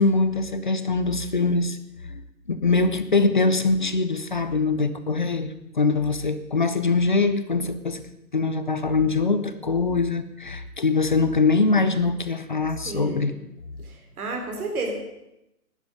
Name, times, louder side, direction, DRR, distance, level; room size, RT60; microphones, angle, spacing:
voice 1, 0.0-1.8 2.1-2.2 2.5-8.0 8.3-13.3, left 3 dB, 30° left, 11 dB, 0.5 m, -23 dB
voice 2, 12.8-13.4 13.8-14.9, right 3 dB, 65° right, 3 dB, 3.9 m, -31 dB
15.5 x 10.5 x 5.3 m, 0.89 s
hypercardioid pair, 160°, 48 cm